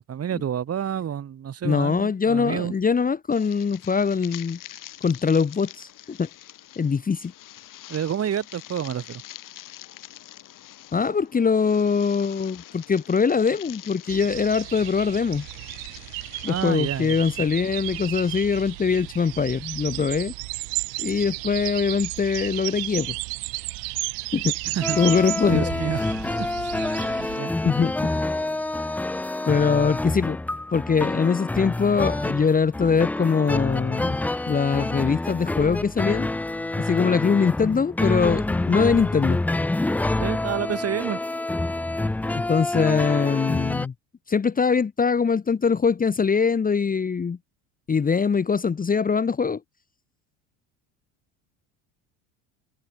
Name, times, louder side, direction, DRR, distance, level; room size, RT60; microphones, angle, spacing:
voice 1, 0.1-2.7 7.9-9.2 16.5-17.2 24.7-25.0 25.4-26.0 26.4-26.7 27.2-27.5 40.2-41.2, right 9 dB, 35° right, 2.1 m, -29 dB
voice 2, 1.6-4.6 5.0-6.3 6.8-7.3 10.9-15.4 16.4-20.3 21.0-23.1 24.3-24.5 25.0-25.7 27.6-28.2 29.5-30.4 30.7-34.2 34.5-36.3 36.8-39.4 42.3-43.9 44.3-47.4 47.9-49.6, left 5 dB, 20° left, 1.2 m, -22 dB
sound 1, 3.3-19.0, left 14 dB, 50° left, 2.2 m, -45 dB
sound 2, 14.1-27.4, right 40 dB or more, 70° right, 1.5 m, -33 dB
sound 3, 24.8-43.9, left 2 dB, 5° left, 0.4 m, -27 dB
hypercardioid pair, 85°, 41 cm